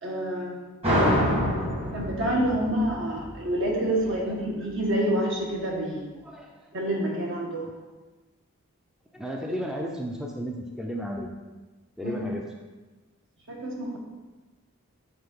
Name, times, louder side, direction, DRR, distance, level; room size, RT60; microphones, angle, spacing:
voice 1, 0.0-0.6 1.9-6.1 6.7-7.7 12.0-12.2 13.5-14.0, right 1 dB, 60° right, -2 dB, 1.5 m, -28 dB
sound 1, 0.8-4.1, equal, 30° right, 1.4 m, -26 dB
voice 2, 4.0-4.4 6.2-6.6 9.1-11.3 12.0-12.4, equal, 5° right, 0 dB, 0.5 m, -34 dB
6.7 x 3.8 x 5.2 m, 1.2 s
head